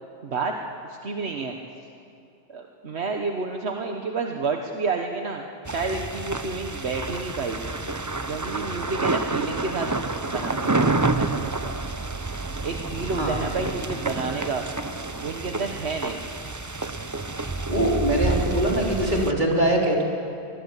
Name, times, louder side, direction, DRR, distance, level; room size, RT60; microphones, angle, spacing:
voice 1, 0.2-1.6 2.5-7.7 8.3-11.8 12.6-14.7 15.2-16.2, right 4 dB, 75° right, 3 dB, 1.5 m, -30 dB
sound 1, 5.6-19.3, right 3 dB, 20° right, 0.7 m, -29 dB
voice 2, 17.7-20.0, right 1 dB, 45° right, -2 dB, 4.1 m, -22 dB
24.0 x 22.0 x 8.3 m, 2.6 s
omnidirectional pair, 1.1 m